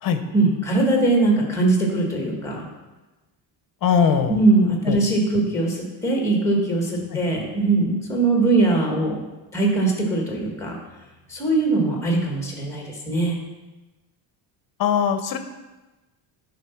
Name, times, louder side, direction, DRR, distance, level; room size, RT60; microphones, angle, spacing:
voice 1, 0.3-2.6 4.3-9.2 9.5-10.8 11.3-13.4, right 2 dB, 5° left, -1 dB, 1.5 m, -21 dB
voice 2, 3.8-4.4 4.9-5.0 7.1-7.2 14.8-15.4, left 7 dB, 50° left, 9 dB, 0.8 m, -20 dB
9.8 x 4.0 x 5.8 m, 1.1 s
cardioid pair, 180°, 45 cm